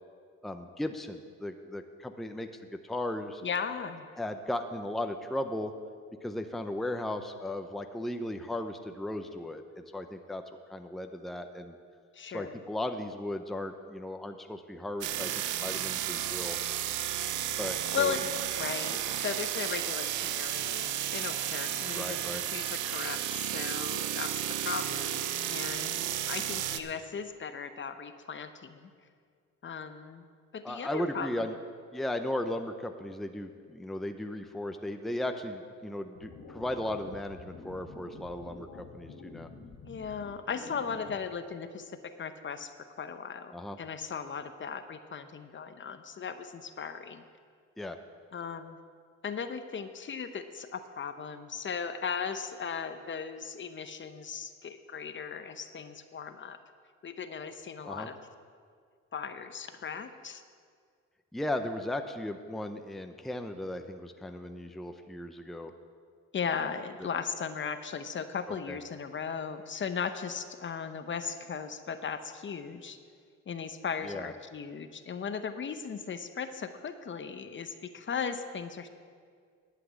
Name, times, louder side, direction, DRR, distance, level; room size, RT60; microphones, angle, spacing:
voice 1, 0.4-3.4 4.2-5.7 6.2-10.4 10.7-11.8 12.3-15.3 15.6-16.6 17.6-18.1 21.9-22.4 30.6-31.6 31.9-39.5 43.5-43.8 47.8-48.0 57.9-58.1 61.3-65.7 68.5-68.8 74.0-74.3, left 1 dB, ahead, 7 dB, 0.6 m, -36 dB
voice 2, 3.4-4.1 12.1-12.6 17.9-18.2 18.6-25.9 26.3-28.9 29.6-30.2 30.5-31.5 39.8-41.9 42.2-42.7 43.0-47.2 48.3-48.8 49.2-56.6 57.0-58.2 59.1-60.4 66.3-73.0 73.5-78.9, left 6 dB, 40° left, 9 dB, 0.8 m, -37 dB
sound 1, 15.0-26.8, right 11 dB, 80° right, 0.7 m, -33 dB
sound 2, 36.1-41.1, left 3 dB, 75° left, 1.7 m, -48 dB
11.5 x 5.9 x 8.6 m, 2.1 s
cardioid pair, 90°, 30 cm